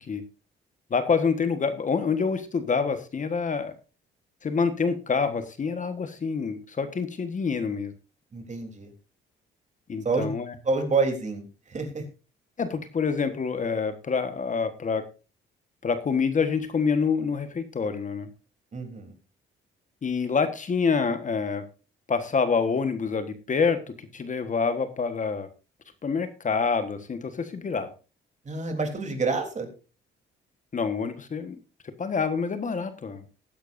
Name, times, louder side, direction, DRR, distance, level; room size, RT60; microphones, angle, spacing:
voice 1, 0.9-3.7 4.4-7.9 9.9-10.5 12.6-15.0 15.8-18.3 20.0-21.7 22.1-25.5 26.0-27.9 30.7-31.6 32.0-33.2, left 5 dB, 40° left, 9 dB, 1.4 m, -27 dB
voice 2, 8.3-8.9 10.0-10.3 10.6-12.0 18.7-19.1 28.4-29.7, right 4 dB, 35° right, 4 dB, 3.4 m, -28 dB
18.5 x 10.5 x 2.6 m, 0.32 s
cardioid pair, 90°, 20 cm